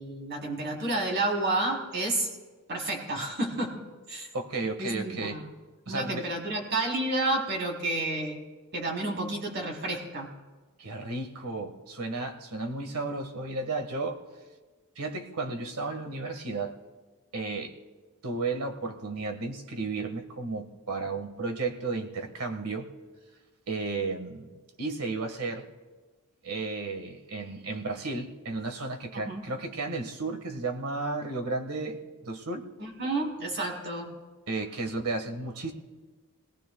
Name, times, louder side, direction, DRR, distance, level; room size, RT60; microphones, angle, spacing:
voice 1, 0.0-2.4 2.7-3.8 4.1-4.3 4.8-5.5 5.9-8.4 8.7-10.3 29.1-29.4 32.8-34.1, right 2 dB, 50° right, 0 dB, 3.4 m, -30 dB
voice 2, 4.3-5.4 5.9-6.3 10.8-14.2 15.0-16.8 17.3-17.7 18.2-22.9 23.7-24.5 24.8-25.7 26.4-32.7 34.5-35.7, right 3 dB, 80° right, 5 dB, 1.6 m, -33 dB
26.5 x 19.0 x 2.3 m, 1.3 s
head